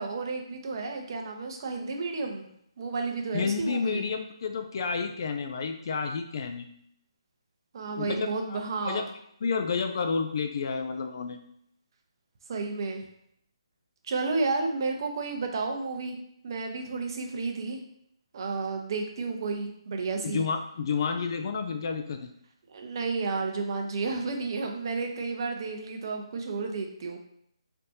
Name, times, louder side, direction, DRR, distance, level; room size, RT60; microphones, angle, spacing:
voice 1, 0.0-2.5 2.8-4.1 7.7-9.1 12.5-13.0 14.1-16.2 16.4-17.8 18.3-20.4 22.7-27.2, right 3 dB, 45° right, 3 dB, 0.7 m, -31 dB
voice 2, 3.3-6.7 8.0-9.1 9.4-11.4 20.2-22.3, left 5 dB, 45° left, 6 dB, 0.4 m, -30 dB
4.2 x 3.4 x 2.7 m, 0.71 s
figure-of-eight pair, 150°, 3 cm